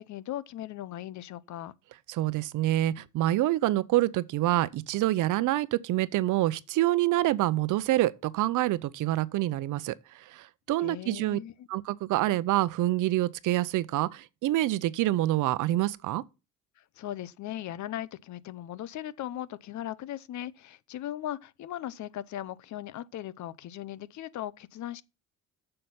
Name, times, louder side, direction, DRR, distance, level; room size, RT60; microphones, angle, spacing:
voice 1, 0.0-1.7 10.8-11.5 16.8-25.0, left 12 dB, 70° left, 0.7 m, -38 dB
voice 2, 2.1-11.4 11.7-16.2, right 15 dB, 85° right, 0.7 m, -27 dB
7.8 x 6.8 x 5.7 m
cardioid pair, 90°, 30 cm